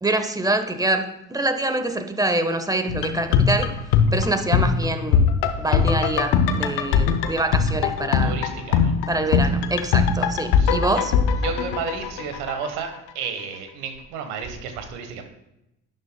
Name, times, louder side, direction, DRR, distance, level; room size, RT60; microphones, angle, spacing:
voice 1, 0.0-3.8 4.1-8.4 9.1-11.1, right 2 dB, 10° right, 8 dB, 1.1 m, -25 dB
sound 1, 2.9-12.8 13.1-13.2, left 6 dB, 85° left, 0.8 m, -21 dB
voice 2, 8.2-9.2 10.6-11.0 11.4-15.3, right 5 dB, 85° right, 6 dB, 1.3 m, -32 dB
11.0 x 9.4 x 2.2 m, 0.88 s
supercardioid pair, 65°, 36 cm